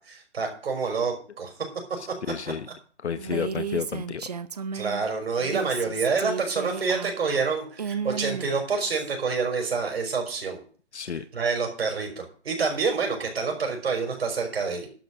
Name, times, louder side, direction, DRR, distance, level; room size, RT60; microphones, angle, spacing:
voice 1, 0.1-1.5 4.7-10.6 11.3-14.9, right 4 dB, 60° right, 3 dB, 5.7 m, -27 dB
voice 2, 2.0-2.7 3.0-4.3 10.9-11.2, left 7 dB, 70° left, 11 dB, 1.1 m, -31 dB
Female speech woman speaking, 3.2-5.0 5.4-9.1, right 6 dB, 35° right, 0.6 m, -33 dB
12.0 x 7.5 x 6.3 m, 0.42 s
hypercardioid pair, 170°, 35 cm